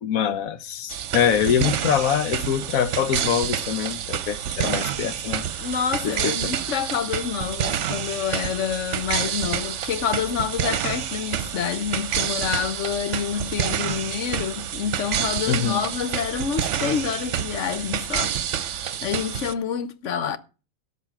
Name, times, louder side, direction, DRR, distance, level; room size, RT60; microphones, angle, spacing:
voice 1, 0.0-5.4 6.0-6.4 15.5-15.8, left 8 dB, 90° left, 1.3 m, -24 dB
sound 1, 0.9-19.5, right 9 dB, 65° right, 1.0 m, -28 dB
voice 2, 5.6-18.7 19.0-20.4, left 8 dB, 65° left, 1.1 m, -28 dB
13.0 x 5.0 x 8.8 m
omnidirectional pair, 1.4 m